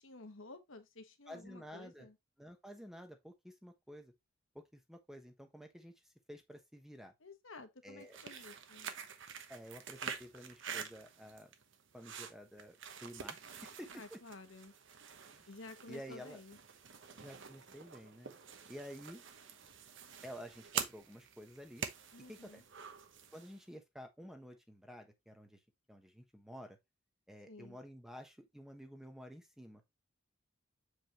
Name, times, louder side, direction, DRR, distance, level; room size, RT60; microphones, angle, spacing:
voice 1, 0.0-2.2 7.2-8.9 13.9-14.7 15.5-16.6 22.1-22.6 27.5-27.8, left 2 dB, 70° left, 1.4 m, -53 dB
voice 2, 1.3-2.1 2.4-4.1 4.5-5.9 6.3-7.1 7.8-8.2 9.5-11.5 11.9-12.7 13.0-14.2 15.3-15.5 15.9-16.4 17.1-18.3 18.7-19.2 20.2-21.8 22.3-22.6 23.3-25.6 25.9-26.8 27.3-29.8, equal, ahead, 1.0 m, -51 dB
sound 1, 8.0-23.6, right 7 dB, 65° right, 1.0 m, -47 dB
7.5 x 5.0 x 3.0 m
head